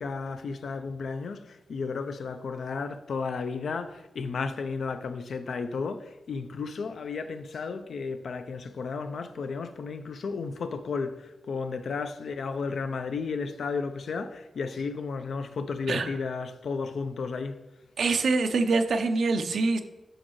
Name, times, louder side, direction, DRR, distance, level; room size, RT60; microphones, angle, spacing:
voice 1, 0.0-17.6, left 4 dB, 70° left, 0.4 m, -33 dB
voice 2, 15.9-16.2 18.0-19.8, right 3 dB, 70° right, 0.5 m, -25 dB
6.4 x 6.1 x 3.1 m
wide cardioid pair, 180°, 0 cm